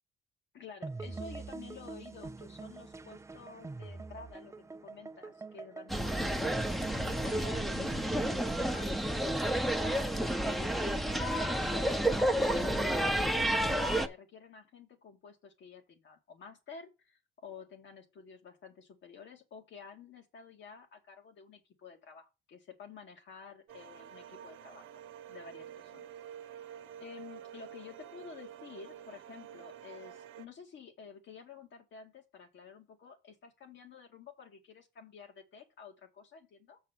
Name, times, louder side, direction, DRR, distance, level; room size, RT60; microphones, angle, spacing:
voice 1, 0.5-10.8 11.1-12.0 12.5-24.9 25.3-26.1 26.4-36.8, left 5 dB, 70° left, 2.1 m, -51 dB
sound 1, 0.8-12.1, right 3 dB, 15° right, 0.4 m, -45 dB
sound 2, 5.9-14.1, right 1 dB, ahead, 0.9 m, -30 dB
sound 3, 23.7-30.5, right 10 dB, 90° right, 0.8 m, -49 dB
6.9 x 4.8 x 5.9 m
cardioid pair, 90°, 20 cm